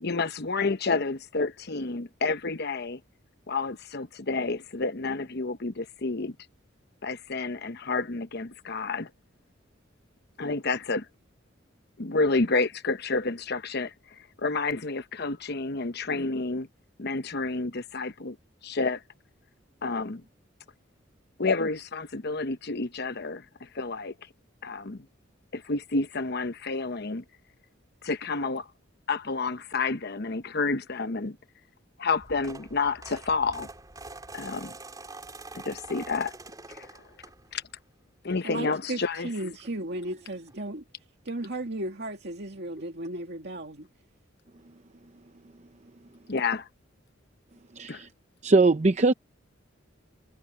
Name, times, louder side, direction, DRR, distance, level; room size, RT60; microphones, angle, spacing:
voice 1, 0.0-3.0 3.5-6.4 7.0-9.1 10.4-11.1 12.0-16.7 17.0-18.4 18.6-19.0 19.8-20.2 21.4-24.1 24.6-25.1 25.5-27.2 28.0-28.7 29.1-31.4 32.0-33.7 34.3-34.8 35.5-36.3 36.7-37.0 37.5-37.6 38.2-39.3 46.3-46.7 47.9-48.0, left 3 dB, 55° left, 0.9 m, -30 dB
sound 1, 32.1-37.7 38.2-38.5 39.7-39.8 40.0-40.1 40.5-40.6, right 3 dB, 20° right, 4.4 m, -45 dB
voice 2, 38.4-40.8 41.3-43.9, right 1 dB, 55° right, 2.3 m, -35 dB
voice 3, 47.8-48.1 48.4-49.1, right 3 dB, 35° right, 0.7 m, -21 dB
head